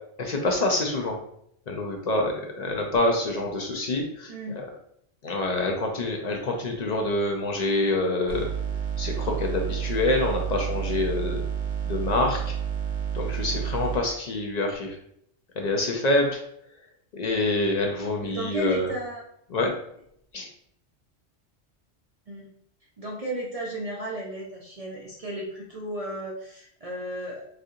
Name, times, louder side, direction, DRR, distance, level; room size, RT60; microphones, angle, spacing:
voice 1, 0.2-1.2 1.7-4.7 5.2-8.4 9.0-11.4 11.8-12.5 13.1-15.0 15.6-16.4 17.1-18.9 19.5-19.7 20.3-20.5, left 2 dB, 55° left, 1 dB, 0.5 m, -26 dB
voice 2, 4.3-4.6 18.2-19.2 22.3-22.5 23.0-27.4, equal, 45° right, -3 dB, 0.5 m, -34 dB
sound 1, 8.3-14.0, right 8 dB, 70° right, 0.9 m, -30 dB
4.2 x 2.5 x 2.7 m, 0.70 s
omnidirectional pair, 1.2 m